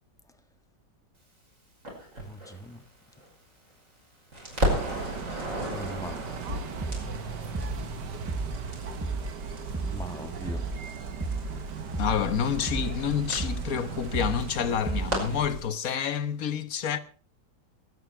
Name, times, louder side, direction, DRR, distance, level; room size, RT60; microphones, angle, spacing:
Crackle, 1.8-4.0 4.3-15.7, equal, 45° right, 6.0 m, -36 dB
voice 1, 2.2-2.8 5.7-6.3 9.9-10.7, right 1 dB, ahead, 1.5 m, -40 dB
sound 1, 4.7-15.5, right 6 dB, 70° right, 1.8 m, -38 dB
sound 2, 6.8-7.2 7.5-7.9 8.3-8.7 9.0-9.4 9.7-10.1 10.5-10.8 11.2-11.6 11.9-12.3 12.7-13.0 13.4-13.8 14.1-14.5 14.9-15.3, right 3 dB, 15° right, 0.6 m, -33 dB
voice 2, 12.0-17.0, left 8 dB, 55° left, 1.4 m, -28 dB
22.5 x 9.3 x 4.6 m
omnidirectional pair, 1.9 m